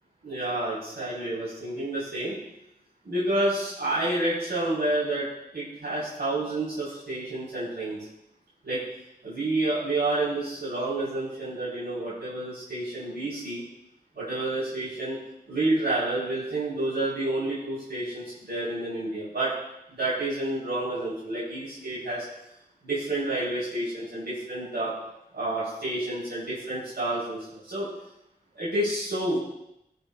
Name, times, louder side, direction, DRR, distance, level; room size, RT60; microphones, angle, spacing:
voice 1, 0.2-2.3 3.0-5.2 5.5-8.0 8.6-8.8 9.2-13.6 14.1-15.2 15.5-19.5 19.9-22.2 22.8-24.9 25.3-27.9 28.5-29.4, right 2 dB, 80° right, -10 dB, 4.1 m, -29 dB
19.0 x 6.7 x 2.4 m, 0.84 s
wide cardioid pair, 55°, 17 cm